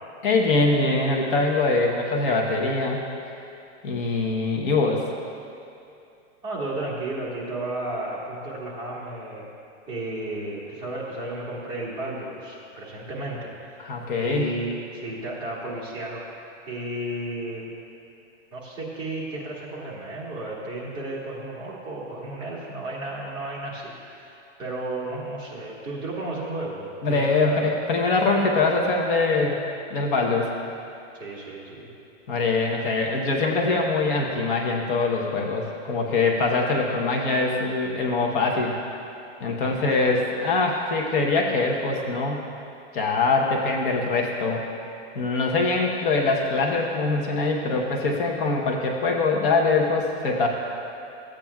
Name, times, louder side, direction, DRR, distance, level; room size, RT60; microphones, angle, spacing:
voice 1, 0.2-3.0 3.8-5.0 13.8-14.5 27.0-29.6 29.9-30.5 32.3-38.7 39.4-42.5 42.9-44.6 45.1-50.5, left 3 dB, 45° left, 0 dB, 1.0 m, -23 dB
voice 2, 6.4-9.5 9.9-13.5 14.2-16.2 16.7-17.9 18.5-27.6 31.1-31.9 39.6-39.9, right 2 dB, 10° right, -7 dB, 1.4 m, -33 dB
14.5 x 8.7 x 2.3 m, 2.7 s
supercardioid pair, 165°, 37 cm